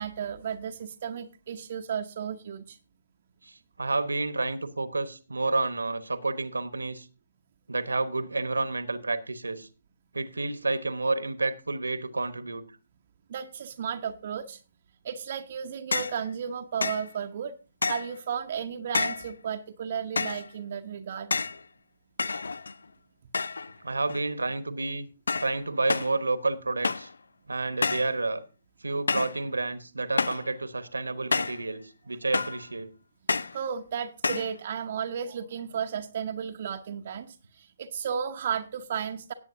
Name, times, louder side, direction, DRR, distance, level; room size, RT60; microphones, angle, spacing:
voice 1, 0.0-2.8 13.3-14.6 15.0-17.5 17.9-21.4 33.5-39.3, right 8 dB, 45° right, 0.8 m, -34 dB
voice 2, 3.4-7.1 7.7-9.7 10.1-12.6 23.8-25.1 25.4-27.1 27.5-28.4 28.8-32.9, right 3 dB, 70° right, 1.2 m, -30 dB
sound 1, 15.9-16.2 16.8-17.1 17.8-18.2 18.9-19.3 20.2-20.5 21.3-21.6 22.2-22.8 23.3-23.7 24.0-24.5 25.3-25.6 25.9-26.2 26.8-27.2 27.8-28.2 29.1-29.4 30.2-30.5 31.3-31.7 32.3-32.7 33.3-33.6 34.2-34.5, left 4 dB, 65° left, 0.4 m, -29 dB
18.0 x 8.1 x 2.7 m
figure-of-eight pair, 135°, 0 cm